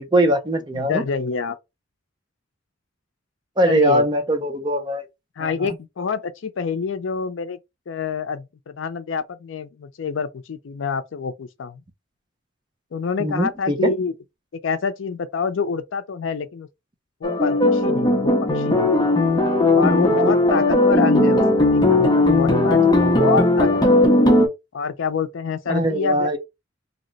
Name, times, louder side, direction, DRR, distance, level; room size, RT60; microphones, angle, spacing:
voice 1, 0.0-1.0 3.6-5.1 5.4-5.7 13.2-13.9 20.9-21.1 25.7-26.4, right 1 dB, 25° right, 0.5 m, -21 dB
voice 2, 0.7-1.6 3.6-4.1 5.4-7.6 7.9-11.8 12.9-14.1 14.6-16.7 17.2-19.1 19.7-24.0 24.7-26.4, left 5 dB, 70° left, 0.4 m, -27 dB
sound 1, 17.2-24.5, left 2 dB, 20° left, 0.6 m, -17 dB
2.8 x 2.1 x 3.9 m
head